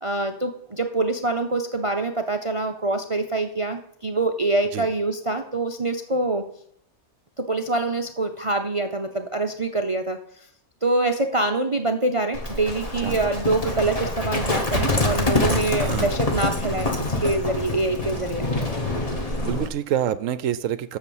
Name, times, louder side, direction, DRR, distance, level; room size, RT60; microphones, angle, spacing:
voice 1, 0.0-6.4 7.4-10.2 10.8-16.9 17.2-18.5, right 2 dB, 35° right, 6 dB, 0.5 m, -25 dB
Livestock farm animals working animals, 12.3-19.7, left 2 dB, 25° left, 1.4 m, -26 dB
voice 2, 15.8-16.2 19.3-21.0, right 10 dB, 70° right, 15 dB, 0.9 m, -27 dB
8.3 x 6.9 x 7.1 m, 0.70 s
omnidirectional pair, 1.5 m